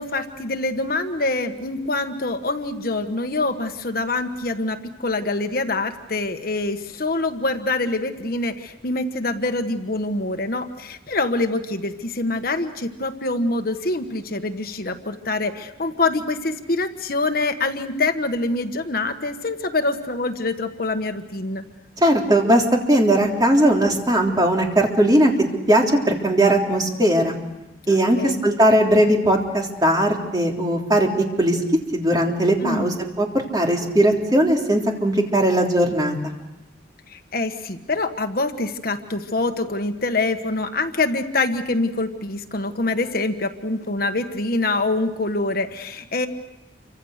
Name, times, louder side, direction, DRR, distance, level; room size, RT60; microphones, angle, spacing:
voice 1, 0.0-21.6 27.9-28.4 32.6-33.0 37.1-46.3, left 2 dB, 55° left, 7 dB, 1.4 m, -25 dB
voice 2, 22.0-25.3 25.7-27.4 27.9-31.1 31.4-31.6 31.9-36.2, right 1 dB, 20° right, 0 dB, 3.4 m, -19 dB
28.5 x 25.5 x 6.6 m, 0.96 s
head